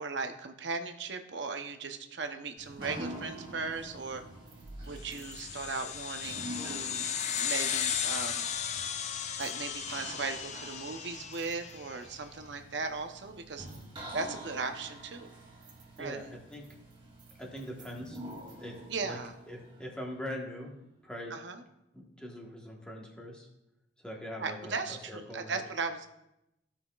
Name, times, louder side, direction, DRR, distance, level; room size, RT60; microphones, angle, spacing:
voice 1, 0.0-4.2 4.8-7.0 7.4-8.4 9.4-13.7 14.1-15.3 16.0-16.3 18.9-19.3 21.3-21.6 24.4-26.1, right 4 dB, 65° right, 6 dB, 0.7 m, -37 dB
sound 1, 2.6-20.4, right 1 dB, 25° right, 1.6 m, -47 dB
sound 2, 4.3-5.7 7.2-7.5 9.3-9.8 10.7-10.8 11.1-12.2 13.7-13.9 14.8-18.6, right 7 dB, 40° right, 2.0 m, -60 dB
sound 3, 5.1-11.9, left 8 dB, 35° left, 0.4 m, -35 dB
voice 2, 16.0-16.7 17.4-18.2 18.6-19.2 19.5-20.7 21.0-21.4 21.9-23.5 24.0-25.6, equal, 5° left, -1 dB, 1.2 m, -42 dB
15.0 x 5.8 x 2.4 m, 0.88 s
head